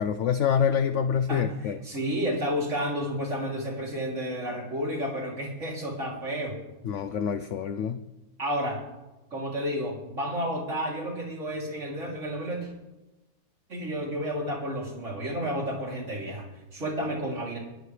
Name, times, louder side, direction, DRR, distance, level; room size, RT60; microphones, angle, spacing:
voice 1, 0.0-1.8 6.8-8.0, left 7 dB, 70° left, 10 dB, 0.7 m, -26 dB
voice 2, 1.3-6.6 8.4-8.8 9.3-12.7 13.7-17.6, equal, 40° right, -2 dB, 3.5 m, -31 dB
20.5 x 12.5 x 3.3 m, 1.0 s
omnidirectional pair, 1.9 m